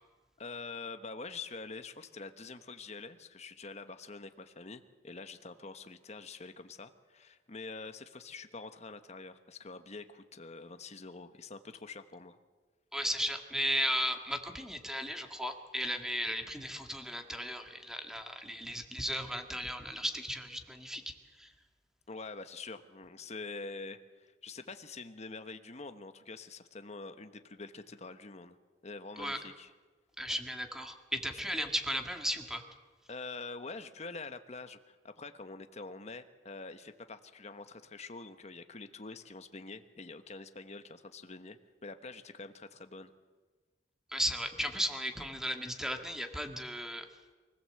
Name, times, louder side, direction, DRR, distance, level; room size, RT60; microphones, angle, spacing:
voice 1, 0.4-12.4 22.1-28.6 28.8-29.7 33.1-43.1, left 3 dB, 40° left, 9 dB, 1.2 m, -46 dB
voice 2, 12.9-21.0 21.4-21.5 29.2-29.4 30.2-32.6 44.1-47.1, equal, 5° right, 5 dB, 1.9 m, -35 dB
24.5 x 16.0 x 7.8 m, 1.3 s
head